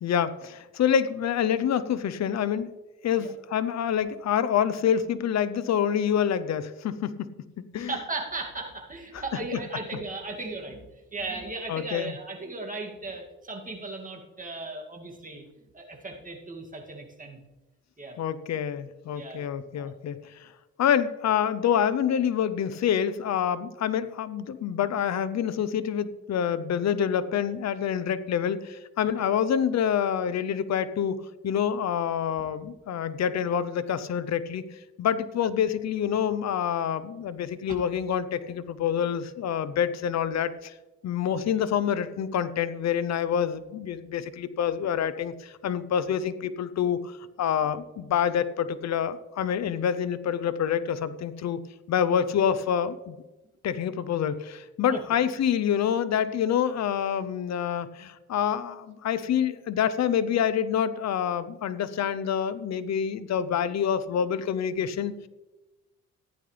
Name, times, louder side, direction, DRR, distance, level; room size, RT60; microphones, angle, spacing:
voice 1, 0.0-2.7 3.0-7.3 7.7-7.9 9.1-9.2 11.7-12.1 18.2-20.5 20.8-34.6 35.0-40.7 41.0-51.6 51.9-53.2 53.6-65.3, left 8 dB, 60° left, 14 dB, 0.8 m, -27 dB
voice 2, 7.8-10.8 11.1-15.4 15.7-17.4 18.0-18.2 19.1-19.5 19.8-19.9 29.2-29.3 41.3-41.4 54.9-55.0, right 3 dB, 25° right, 0 dB, 2.5 m, -36 dB
14.5 x 10.5 x 3.4 m, 1.1 s
cardioid pair, 90°, 30 cm